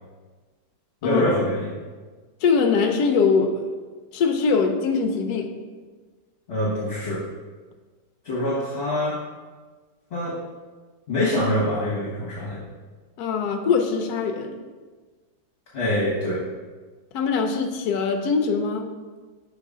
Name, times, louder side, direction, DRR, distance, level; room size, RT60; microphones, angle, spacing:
voice 1, 1.0-1.7 6.5-7.2 8.2-9.2 10.1-10.3 11.1-12.6 15.7-16.4, left 1 dB, 40° left, -7 dB, 1.3 m, -24 dB
voice 2, 2.4-3.6 4.1-5.5 13.2-14.5 17.1-18.9, left 5 dB, 65° left, 4 dB, 1.0 m, -22 dB
6.7 x 4.0 x 3.6 m, 1.4 s
omnidirectional pair, 2.0 m